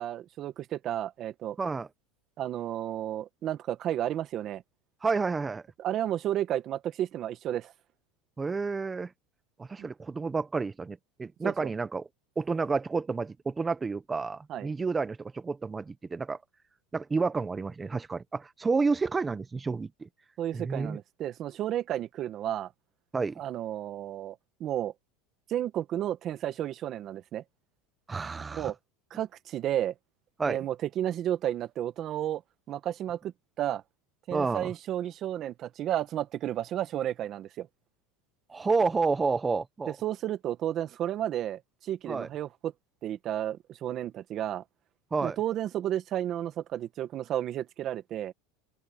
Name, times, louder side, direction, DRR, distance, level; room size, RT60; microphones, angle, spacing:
voice 1, 0.0-1.6 2.4-4.6 5.8-7.7 9.8-9.9 11.4-11.7 14.5-14.7 20.4-22.7 23.4-24.9 25.5-27.4 28.5-28.7 29.1-29.9 30.5-32.4 32.7-33.8 34.3-37.7 39.9-42.7 43.0-44.6 45.2-48.3, right 11 dB, 35° right, 1.5 m, -32 dB
voice 2, 5.0-5.6 8.4-9.1 9.6-12.1 12.4-16.4 16.9-20.1 20.5-21.0 23.1-23.4 28.1-28.7 30.4-30.6 34.3-34.7 38.5-40.0 42.1-42.3 45.1-45.4, right 4 dB, 15° right, 1.0 m, -30 dB
supercardioid pair, 140°, 0 cm